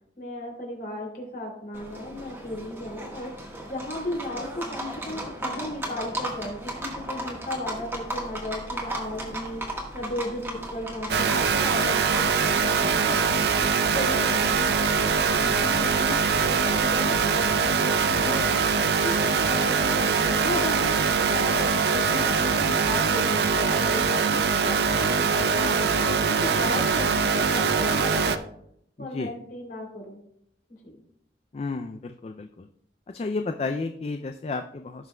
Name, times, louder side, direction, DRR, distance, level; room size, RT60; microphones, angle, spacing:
voice 1, 0.2-9.6 9.9-13.2 13.9-14.7 15.6-28.4 29.0-30.2 30.8-31.0, left 1 dB, 50° left, -1 dB, 2.8 m, -35 dB
Livestock farm animals working animals, 1.7-21.7, right 1 dB, 15° right, 1.3 m, -37 dB
sound 1, 11.1-28.4, right 5 dB, 65° right, 0.5 m, -23 dB
voice 2, 29.0-29.3 31.5-32.7 33.1-35.1, left 3 dB, 35° left, 7 dB, 0.3 m, -32 dB
17.0 x 5.9 x 2.2 m, 0.73 s
head